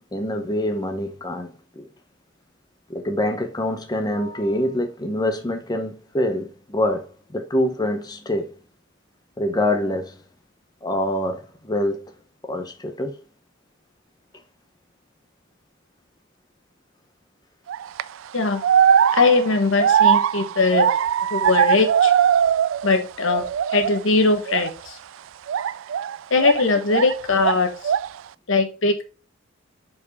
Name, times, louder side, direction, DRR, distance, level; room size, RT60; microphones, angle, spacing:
voice 1, 0.1-1.9 2.9-8.5 9.4-10.2 10.8-12.0 12.4-13.1 18.5-18.7, left 1 dB, 20° left, 0.8 m, -25 dB
sound 1, 17.7-18.0 18.6-23.0 23.3-24.0 24.5-24.7 25.5-27.1 27.4-28.2, right 8 dB, 80° right, 0.3 m, -20 dB
voice 2, 19.1-20.9 21.3-22.1 22.8-23.4 23.7-25.0 26.3-27.7 28.5-29.0, left 3 dB, 85° left, 1.3 m, -20 dB
5.2 x 4.7 x 4.6 m
head